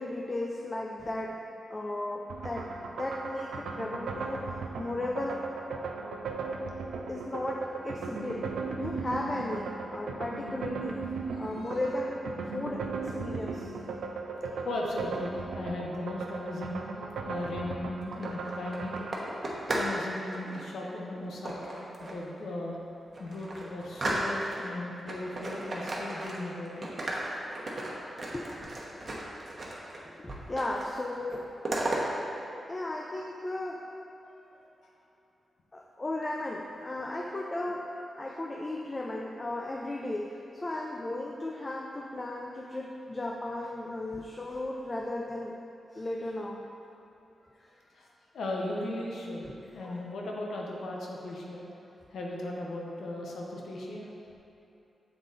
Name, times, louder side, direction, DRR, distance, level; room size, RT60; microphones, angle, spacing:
voice 1, 0.0-2.7 3.0-4.5 4.8-5.5 7.1-11.1 11.4-12.2 12.5-13.7 28.3-28.6 28.9-29.0 30.1-31.5 32.7-33.9 35.7-45.6 45.9-46.7 47.6-47.7 49.8-50.0, left 1 dB, 30° left, 0 dB, 0.4 m, -35 dB
sound 1, 2.3-19.2, right 4 dB, 85° right, 0.5 m, -37 dB
voice 2, 11.3-11.9 13.5-13.6 14.4-16.8 17.3-19.0 19.7-22.8 23.2-27.1 30.0-30.1 34.2-34.6 47.9-48.1 48.3-51.7 52.1-54.1, left 1 dB, 80° left, -2 dB, 0.9 m, -37 dB
sound 2, 18.0-20.0 20.3-20.6 21.4-22.3 22.7-22.8 23.1-24.7 25.1-26.6 26.8-30.0 30.3-30.9 31.1-32.0, right 1 dB, 45° right, 1.0 m, -35 dB
7.2 x 3.8 x 3.8 m, 2.8 s
cardioid pair, 65°, 0 cm